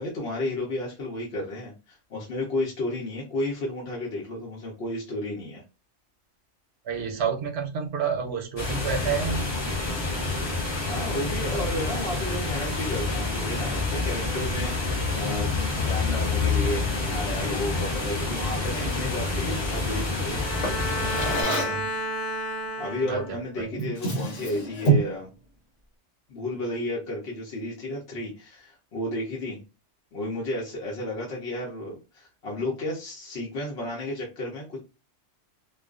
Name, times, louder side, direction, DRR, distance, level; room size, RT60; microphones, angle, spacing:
voice 1, 0.0-5.6 10.9-20.6 22.8-25.3 26.3-29.6 30.1-34.8, left 1 dB, 60° left, -3 dB, 0.9 m, -32 dB
voice 2, 6.9-9.5 21.4-21.9 23.0-23.7, right 6 dB, 65° right, 3 dB, 0.8 m, -30 dB
sound 1, 8.6-21.4, left 3 dB, 25° left, 0.9 m, -28 dB
Bowed string instrument, 20.3-23.5, equal, ahead, 1.1 m, -32 dB
Drawer open or close, 20.6-21.9 23.1-23.3 23.7-25.2, right 3 dB, 75° left, 1.2 m, -27 dB
2.4 x 2.2 x 2.3 m, 0.29 s
omnidirectional pair, 1.2 m